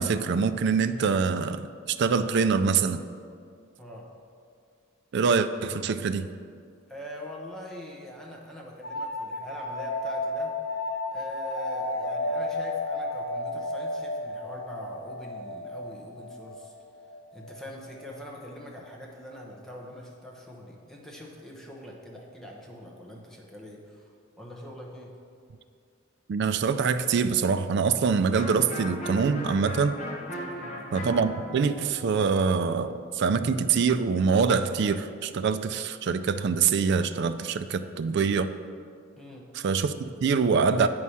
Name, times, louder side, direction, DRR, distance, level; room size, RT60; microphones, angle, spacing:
voice 1, 0.0-3.0 5.1-6.3 26.3-30.0 30.9-38.5 39.6-40.9, right 5 dB, 60° right, 11 dB, 0.4 m, -24 dB
voice 2, 3.8-4.1 6.9-10.5 11.1-16.7 17.3-25.2 30.4-30.8 39.2-39.5, equal, ahead, -3 dB, 1.0 m, -43 dB
sound 1, 8.8-18.2, left 2 dB, 55° left, 0.7 m, -33 dB
Electric guitar, 28.3-34.0, equal, 35° left, 1.0 m, -39 dB
8.5 x 4.8 x 5.6 m, 2.3 s
head